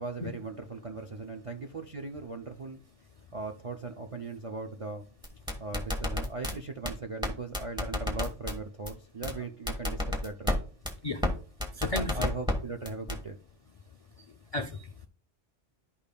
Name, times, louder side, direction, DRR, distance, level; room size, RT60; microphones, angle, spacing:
voice 1, 0.0-2.8 3.3-5.1 5.6-10.6 11.9-13.4, right 3 dB, 50° right, 0.4 m, -39 dB
sound 1, 5.2-6.5 6.9-7.0 7.2-7.3 7.5-8.5 8.9-9.0 9.2-9.3 9.7-10.6 10.9-11.0 11.2-11.3 11.6-12.5 12.9-13.2, left 1 dB, 5° right, 1.2 m, -29 dB
voice 2, 11.0-12.2 13.9-15.1, left 2 dB, 60° left, 0.4 m, -36 dB
11.5 x 5.2 x 2.2 m
omnidirectional pair, 1.2 m